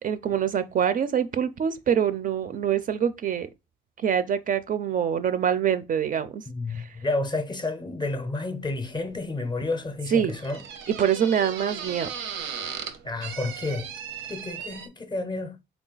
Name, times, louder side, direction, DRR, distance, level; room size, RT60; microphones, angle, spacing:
voice 1, 0.0-3.5 4.0-6.4 6.7-6.9 10.1-10.3 10.9-12.1, right 8 dB, 45° right, 0.4 m, -25 dB
voice 2, 6.5-10.6 13.0-13.9 14.3-15.6, left 2 dB, 20° left, 0.5 m, -30 dB
sound 1, 8.6-14.9, right 7 dB, 80° right, 0.6 m, -38 dB
3.5 x 2.3 x 3.9 m
cardioid pair, 90°, 20 cm